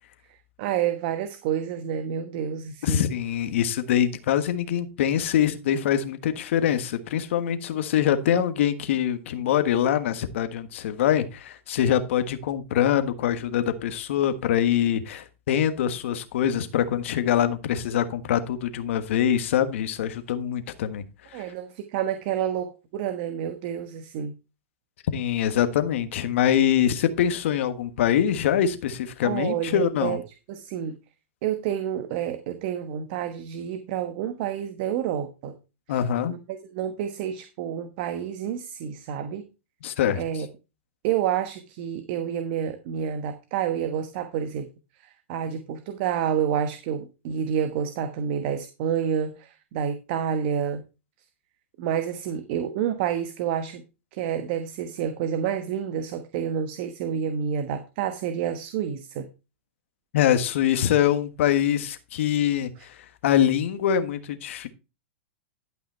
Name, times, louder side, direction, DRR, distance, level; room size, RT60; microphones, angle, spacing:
voice 1, 0.3-3.1 8.3-8.4 21.3-24.3 29.2-30.2 30.5-30.9 31.4-35.6 35.9-36.0 36.3-39.4 40.1-40.5 41.0-44.7 45.0-50.8 51.8-53.8 54.1-59.3, right 9 dB, 55° right, 1.1 m, -29 dB
voice 2, 2.8-21.0 21.3-21.4 25.1-30.2 35.9-36.4 39.8-40.2 60.1-64.7, left 10 dB, 70° left, 1.4 m, -24 dB
11.5 x 5.7 x 4.3 m
hypercardioid pair, 125°, 7 cm